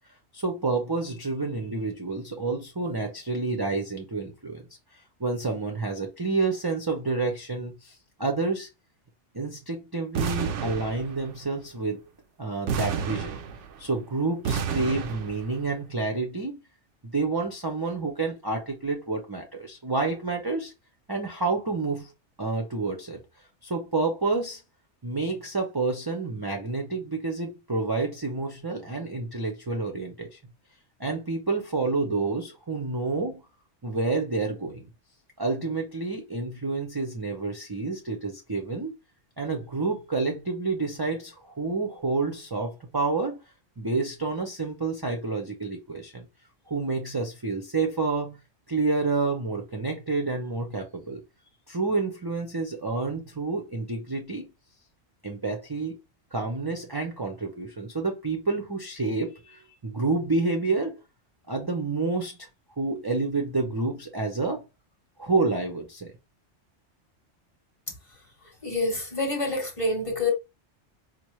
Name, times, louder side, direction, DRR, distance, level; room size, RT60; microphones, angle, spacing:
voice 1, 0.3-4.6 5.2-8.7 9.3-12.0 12.4-13.4 13.8-16.6 17.0-20.7 21.1-22.1 22.4-23.2 23.6-24.6 25.0-30.4 31.0-33.4 33.8-34.8 35.4-38.9 39.4-43.4 43.8-46.3 46.7-48.4 48.7-51.2 51.7-54.5 55.2-56.0 56.3-61.0 61.5-62.5 62.8-64.6 65.2-66.1, right 3 dB, 30° right, 0.5 m, -29 dB
sound 1, 10.1-11.4 12.7-13.9 14.4-15.6, right 7 dB, 85° right, 0.9 m, -30 dB
voice 2, 68.6-70.3, left 2 dB, 30° left, 1.0 m, -27 dB
4.4 x 2.0 x 3.1 m
omnidirectional pair, 1.2 m